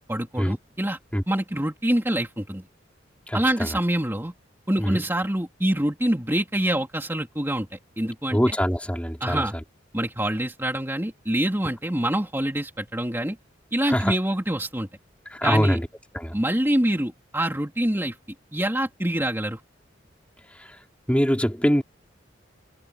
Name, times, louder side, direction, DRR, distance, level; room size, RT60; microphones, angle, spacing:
voice 1, 0.1-1.0 1.3-2.6 3.3-4.3 4.7-8.5 9.2-9.5 9.9-13.4 13.7-14.9 15.4-15.8 16.3-18.2 18.5-19.6, right 1 dB, 15° right, 2.8 m, -25 dB
voice 2, 3.3-3.8 4.8-5.0 8.3-9.4 13.9-14.1 15.3-15.8 16.1-16.3 21.1-21.8, equal, 5° left, 4.2 m, -23 dB
head